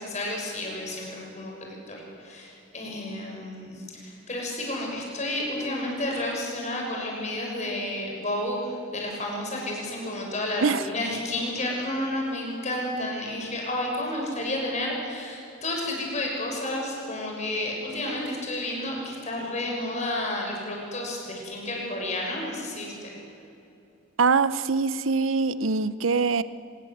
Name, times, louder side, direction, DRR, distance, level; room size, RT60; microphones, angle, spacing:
voice 1, 0.0-23.2, left 1 dB, 35° left, 0 dB, 6.5 m, -31 dB
voice 2, 24.2-26.4, right 4 dB, 85° right, 15 dB, 0.8 m, -23 dB
25.0 x 20.0 x 8.1 m, 2.8 s
head